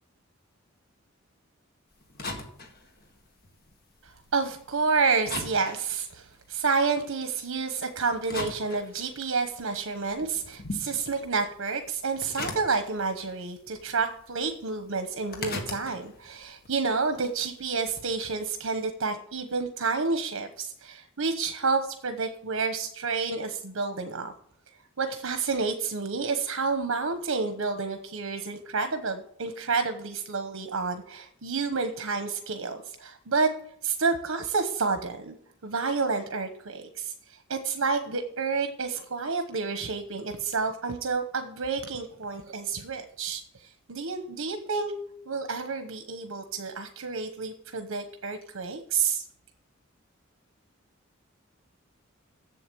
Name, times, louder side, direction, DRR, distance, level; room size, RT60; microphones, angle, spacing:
sound 1, 1.9-4.9 5.2-7.2 7.8-9.4 9.8-13.4 13.7-14.5 14.8-18.2, left 2 dB, 50° left, 1.7 m, -40 dB
voice 1, 4.0-24.3 25.0-33.5 33.8-35.4 35.6-37.1 37.5-43.4 43.9-44.9 45.3-49.2, right 4 dB, 85° right, 7 dB, 1.0 m, -29 dB
7.8 x 7.5 x 7.7 m, 0.65 s
head